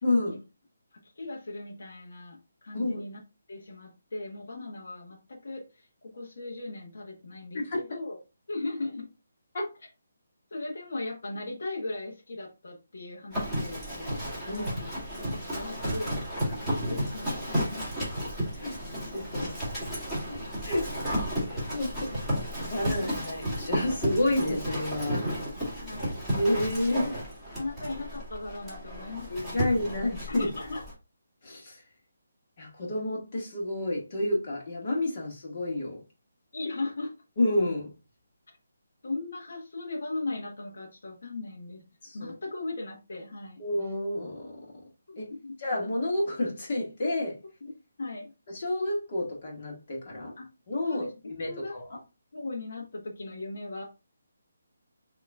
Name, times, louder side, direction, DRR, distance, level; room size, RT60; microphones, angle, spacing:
voice 1, 0.0-0.4 2.7-3.0 7.5-7.8 9.5-9.7 14.5-14.7 18.6-19.5 20.7-20.9 21.5-22.3 22.7-25.3 26.0-27.2 29.3-30.5 31.4-31.8 32.6-36.0 37.4-37.9 42.0-42.3 43.6-44.5 45.2-45.3 45.6-47.4 48.5-50.3 50.7-51.1 51.4-52.0, left 1 dB, 40° left, 1.7 m, -30 dB
voice 2, 0.9-3.2 3.5-8.2 8.5-9.1 10.5-14.2 14.5-14.9 15.2-17.9 19.4-19.5 20.3-20.4 22.1-22.2 23.0-23.1 25.8-26.2 27.5-29.7 30.3-30.8 36.5-37.1 38.5-38.6 39.0-41.8 42.1-43.6 45.1-45.5 47.6-47.7 48.0-48.3 50.4-50.5 50.8-51.1 51.4-51.7 52.3-53.8, left 2 dB, 60° left, 1.2 m, -38 dB
Livestock farm animals working animals, 13.3-30.9, equal, 5° left, 1.9 m, -33 dB
5.5 x 3.0 x 2.4 m
hypercardioid pair, 170°, 0 cm